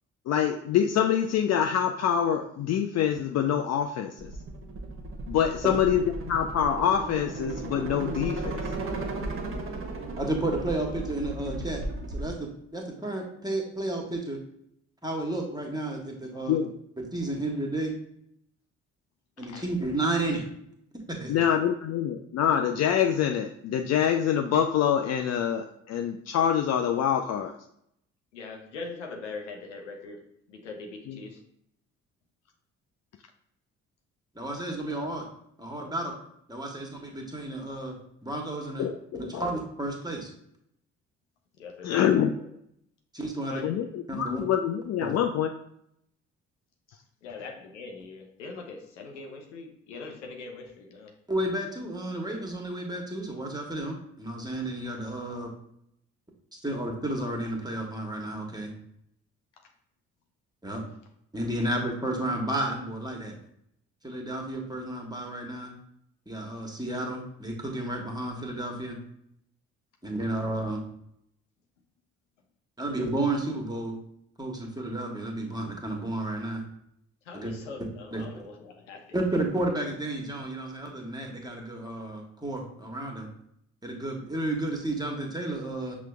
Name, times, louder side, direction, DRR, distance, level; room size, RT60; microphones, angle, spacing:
voice 1, 0.3-4.3 5.3-8.7 16.5-16.7 19.5-19.6 21.3-27.5 31.1-31.2 38.8-39.5 41.8-42.4 43.6-45.5, left 9 dB, 50° left, 5 dB, 0.4 m, -25 dB
sound 1, 4.2-12.3, right 2 dB, 40° right, 0.8 m, -35 dB
voice 2, 10.2-11.8 12.1-14.4 15.0-16.6 17.1-17.9 19.4-20.4 21.2-21.4 34.3-35.2 35.6-36.1 36.5-37.9 38.2-38.9 39.1-40.3 43.1-43.6 44.1-44.4 45.0-45.1 51.3-55.5 56.5-58.7 60.6-60.8 61.3-63.3 64.0-65.7 66.3-69.0 70.0-70.8 72.8-74.0 74.4-76.6 77.3-77.5 78.1-78.4 79.1-83.3 83.8-86.0, right 1 dB, 10° right, 0 dB, 1.2 m, -32 dB
voice 3, 28.3-30.2 30.5-31.4 41.6-42.1 42.4-42.5 43.5-43.8 47.2-51.1 77.2-79.1, left 4 dB, 90° left, 2 dB, 0.6 m, -41 dB
5.9 x 2.3 x 3.3 m, 0.73 s
hypercardioid pair, 45°, 35 cm